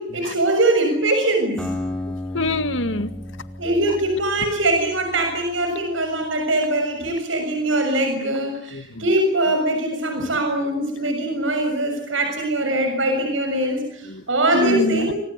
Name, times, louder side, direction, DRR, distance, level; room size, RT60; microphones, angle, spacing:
voice 1, 0.0-1.7 3.6-15.1, right 1 dB, 90° right, 4 dB, 6.8 m, -22 dB
Acoustic guitar, 1.6-5.7, left 1 dB, 5° left, 5.6 m, -33 dB
voice 2, 2.1-3.1 8.7-9.0 14.1-14.2 14.5-15.1, left 1 dB, 80° left, 11 dB, 2.0 m, -25 dB
28.0 x 25.0 x 8.3 m, 0.68 s
head